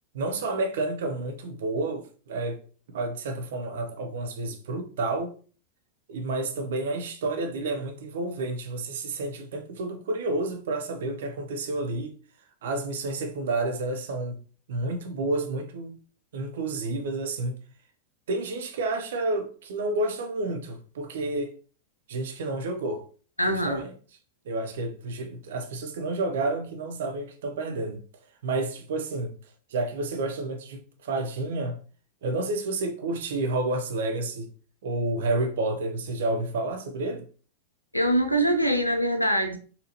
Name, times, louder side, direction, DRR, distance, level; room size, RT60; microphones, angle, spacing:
voice 1, 0.1-2.6 2.9-5.3 6.1-12.1 12.6-14.4 14.7-16.0 16.3-17.6 18.3-21.5 22.1-23.1 23.5-23.9 24.5-28.0 28.4-29.3 29.7-31.8 32.2-34.5 34.8-37.3, right 2 dB, 60° right, 0.7 m, -30 dB
voice 2, 23.4-23.8 37.9-39.6, right 1 dB, 90° left, 0.5 m, -23 dB
4.2 x 2.7 x 2.9 m
figure-of-eight pair, 90°, 0 cm